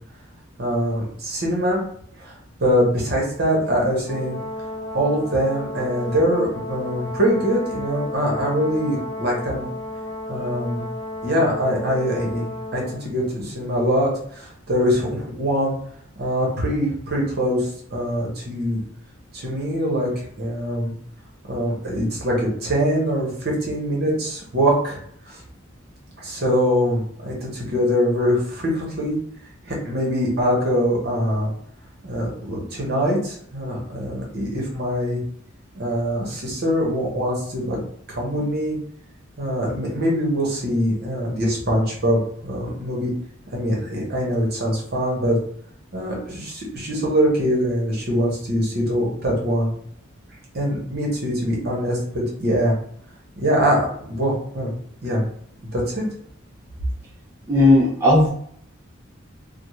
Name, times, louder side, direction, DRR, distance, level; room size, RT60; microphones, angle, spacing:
voice 1, 0.6-1.8 2.2-4.4 4.9-9.7 10.3-10.8 11.2-15.7 16.2-18.8 19.3-20.9 21.5-25.0 25.3-25.4 26.2-29.2 29.6-31.5 32.0-35.2 35.7-37.8 38.1-38.8 39.4-43.1 43.5-45.4 45.9-49.7 50.5-52.7 53.4-54.7 55.0-55.2 55.7-56.0, equal, 50° right, -2 dB, 0.9 m, -23 dB
Brass instrument, 4.0-13.0, left 1 dB, 30° left, 1.0 m, -33 dB
voice 2, 57.5-58.3, left 1 dB, 15° right, -6 dB, 0.4 m, -15 dB
2.4 x 2.1 x 3.0 m, 0.63 s
head